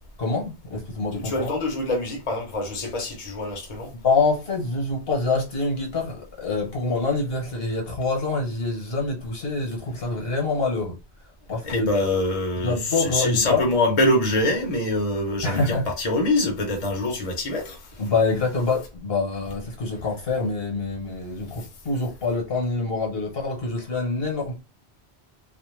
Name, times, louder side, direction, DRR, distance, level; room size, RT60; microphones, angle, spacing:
voice 1, 0.2-1.5 4.0-11.0 11.5-11.9 12.6-13.6 15.4-15.8 18.0-24.6, left 3 dB, 65° left, 1.2 m, -26 dB
voice 2, 1.1-3.9 11.6-17.9, left 1 dB, 40° left, 0.8 m, -24 dB
2.5 x 2.1 x 3.1 m
omnidirectional pair, 1.1 m